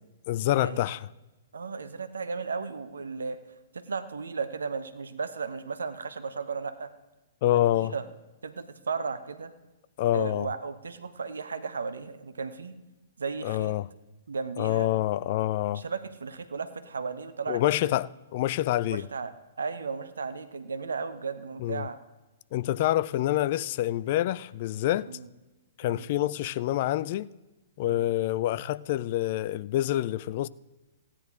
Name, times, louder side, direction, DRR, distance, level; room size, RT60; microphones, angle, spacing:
voice 1, 0.3-1.1 7.4-7.9 10.0-10.5 13.4-13.9 14.6-15.8 17.5-19.1 21.6-21.9 22.5-25.1 25.8-27.3 27.8-30.5, left 14 dB, 45° left, 0.3 m, -27 dB
voice 2, 1.5-3.4 3.7-6.9 7.4-8.0 8.4-9.5 10.1-12.7 13.2-13.7 14.3-14.9 15.7-18.0 18.8-19.3 19.6-22.0 25.1-25.3 25.8-26.0 27.8-28.0, right 5 dB, 70° right, 0.8 m, -35 dB
16.0 x 9.9 x 3.7 m
figure-of-eight pair, 110°, 0 cm